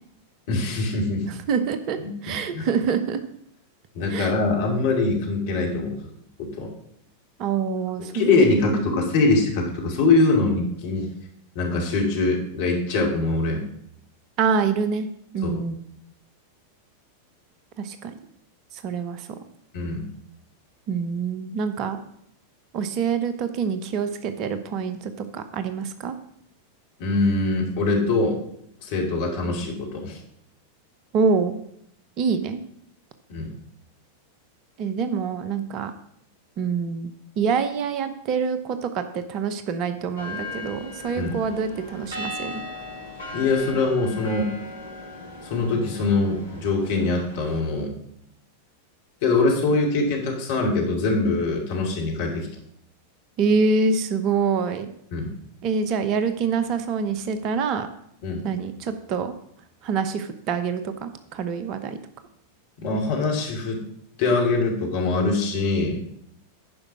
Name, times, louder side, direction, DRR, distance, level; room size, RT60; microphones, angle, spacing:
voice 1, 0.5-1.3 2.0-2.1 2.5-2.7 3.9-5.9 6.4-6.7 8.1-11.1 11.5-13.6 15.4-15.5 19.7-20.1 27.0-28.4 28.8-30.2 33.3-33.5 41.2-41.4 43.3-44.5 45.4-47.9 49.2-52.5 55.1-55.3 58.2-58.4 62.8-63.8 64.2-66.0, left 3 dB, 50° left, 0 dB, 2.6 m, -23 dB
voice 2, 1.3-3.2 4.1-4.3 7.4-9.0 14.4-15.1 15.3-15.8 17.8-18.2 18.7-19.4 20.9-22.0 22.7-26.1 31.1-31.5 32.2-32.6 34.8-35.9 36.6-42.7 53.4-54.9 55.6-57.9 58.4-59.3 59.8-62.0, right 5 dB, 40° right, 10 dB, 0.8 m, -26 dB
sound 1, 40.2-47.6, left 2 dB, 80° left, 2.5 m, -37 dB
9.8 x 5.2 x 6.2 m, 0.72 s
figure-of-eight pair, 90°, 0 cm